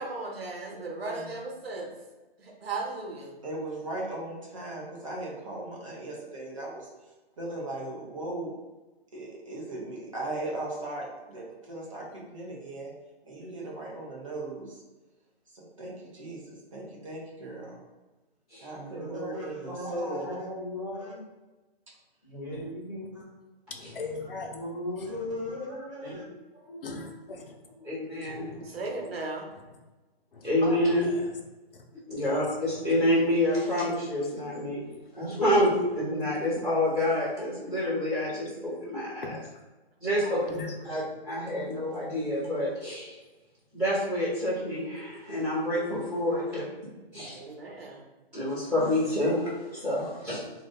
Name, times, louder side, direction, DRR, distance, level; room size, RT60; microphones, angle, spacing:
voice 1, 0.0-1.9 2.4-3.3 28.6-29.5 40.2-40.7 47.3-48.0, right 3 dB, 75° right, 1 dB, 1.1 m, -36 dB
voice 2, 3.4-8.5 9.1-12.9 13.3-14.8 15.5-17.8 18.6-20.3 21.0-21.1 23.1-23.3 25.0-26.2 46.4-46.5, right 2 dB, 30° right, -4 dB, 0.9 m, -38 dB
voice 3, 18.7-21.2 22.2-23.2 24.5-27.2 27.7-27.8 30.6-30.8, left 1 dB, 25° left, -9 dB, 0.9 m, -38 dB
voice 4, 23.7-24.6 25.0-25.5 26.8-27.6 28.2-28.8 30.3-30.5 31.0-31.3 31.7-31.9 32.1-33.0 34.9-35.1 35.3-35.6 39.2-39.6 40.4-40.7, left 3 dB, 60° left, 2 dB, 0.7 m, -40 dB
voice 5, 27.8-28.5 30.4-31.1 32.1-34.9 35.1-39.2 40.0-40.4 40.9-43.2 43.7-46.6 47.1-47.4 48.3-50.4, left 1 dB, 5° right, -17 dB, 1.2 m, -28 dB
3.1 x 2.6 x 3.8 m, 1.1 s
hypercardioid pair, 180°, 31 cm